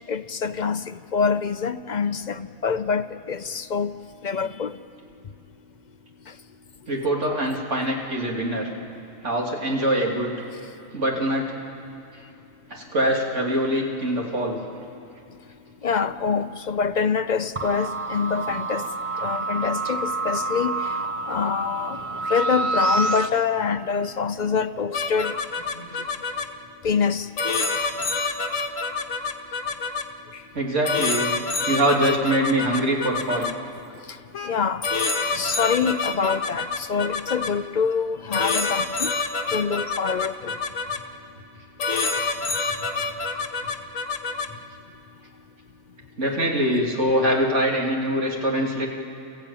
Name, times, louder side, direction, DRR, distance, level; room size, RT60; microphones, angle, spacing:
voice 1, 0.1-3.9 4.2-4.7 15.8-18.9 19.2-20.9 21.3-22.0 22.3-25.4 26.8-27.3 30.3-30.4 34.4-34.9 35.3-39.1 39.5-40.6, left 6 dB, 50° left, 10 dB, 0.5 m, -25 dB
voice 2, 6.9-8.7 9.2-10.3 10.9-11.5 12.7-14.6 25.8-25.9 30.5-31.3 31.7-33.5 46.2-48.9, right 1 dB, 60° right, -1 dB, 3.2 m, -23 dB
sound 1, 17.6-23.3, right 3 dB, 35° right, 0.6 m, -27 dB
sound 2, 24.9-26.4 27.4-30.0 30.8-33.5 34.3-34.5 34.8-37.5 38.3-41.0 41.8-44.5, left 4 dB, 75° left, 1.5 m, -27 dB
29.0 x 15.0 x 9.0 m, 2.7 s
omnidirectional pair, 1.4 m